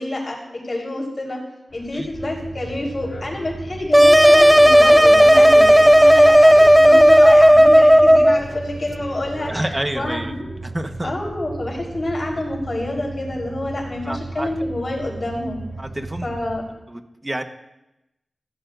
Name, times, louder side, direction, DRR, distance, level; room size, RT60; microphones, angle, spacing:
voice 1, 0.0-1.4 1.7-10.5 11.0-15.6 16.2-16.6, left 1 dB, 50° left, -1 dB, 4.3 m, -28 dB
sound 1, 1.7-16.8, left 1 dB, 70° left, 2.5 m, -40 dB
sound 2, 2.1-16.6, right 3 dB, 80° right, 3.4 m, -36 dB
sound 3, 3.9-8.4, equal, 5° right, 0.5 m, -10 dB
voice 2, 9.5-10.3 10.6-11.1 14.0-14.5 15.8-16.3 16.9-17.4, right 1 dB, 25° right, 6 dB, 1.3 m, -28 dB
15.5 x 14.0 x 2.6 m, 0.92 s
cardioid pair, 45°, 0 cm